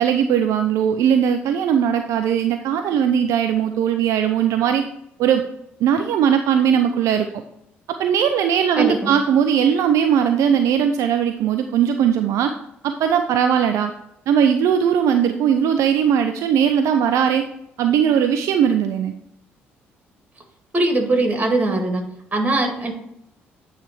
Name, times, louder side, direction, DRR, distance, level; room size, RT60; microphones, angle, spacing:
voice 1, 0.0-4.9 5.2-5.4 5.8-7.3 8.0-12.5 12.8-13.9 14.3-17.4 17.8-19.1, right 8 dB, 60° right, 7 dB, 0.4 m, -19 dB
voice 2, 8.8-9.1 20.7-22.0 22.3-22.9, right 2 dB, 25° right, 3 dB, 2.1 m, -20 dB
9.0 x 3.4 x 4.6 m, 0.79 s
figure-of-eight pair, 45°, 6 cm